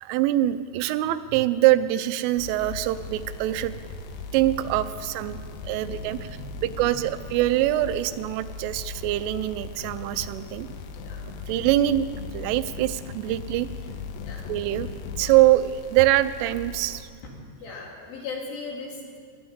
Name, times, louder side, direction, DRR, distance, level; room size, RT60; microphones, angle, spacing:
voice 1, 0.0-3.8 4.3-5.4 5.6-10.7 11.2-12.1 12.3-13.7 14.5-14.9 15.2-17.1, right 15 dB, 90° right, 13 dB, 3.1 m, -24 dB
sound 1, 2.4-17.0, left 5 dB, 80° left, 2.9 m, -38 dB
voice 2, 5.4-7.1 11.0-11.3 14.2-14.5 17.6-19.2, left 3 dB, 55° left, -1 dB, 3.5 m, -39 dB
20.0 x 7.9 x 7.9 m, 2.1 s
omnidirectional pair, 5.6 m